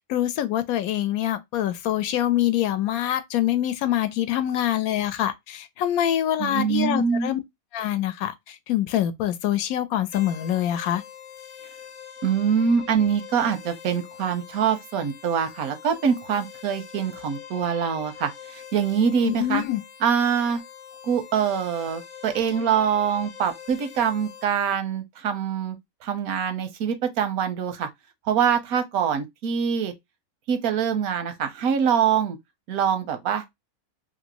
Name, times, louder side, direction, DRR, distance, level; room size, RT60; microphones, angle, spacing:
voice 1, 0.1-7.4 7.7-11.0 19.2-19.8, left 12 dB, 80° left, 1.0 m, -25 dB
voice 2, 6.4-7.3 12.2-19.6 20.0-20.6 21.0-25.8 26.0-27.9 28.3-29.9 30.5-32.4 32.7-33.6, right 7 dB, 85° right, 1.2 m, -24 dB
sound 1, 10.1-24.4, left 9 dB, 55° left, 1.0 m, -44 dB
3.1 x 2.6 x 2.8 m
omnidirectional pair, 1.5 m